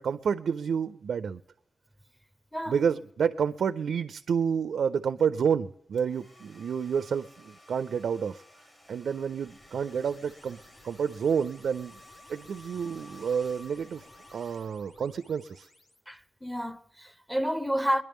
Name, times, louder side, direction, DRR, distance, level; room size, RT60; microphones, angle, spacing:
voice 1, 0.0-1.4 2.7-8.4 8.9-10.6 10.8-12.0 12.3-14.1 14.3-15.7, right 7 dB, 80° right, 0.4 m, -29 dB
Domestic sounds home sounds, 6.0-15.1, left 1 dB, 25° left, 1.5 m, -54 dB
sound 1, 9.2-16.0, left 1 dB, 65° left, 1.7 m, -58 dB
voice 2, 16.1-18.0, equal, 5° left, 0.6 m, -30 dB
23.0 x 10.5 x 3.5 m
wide cardioid pair, 145°, 0 cm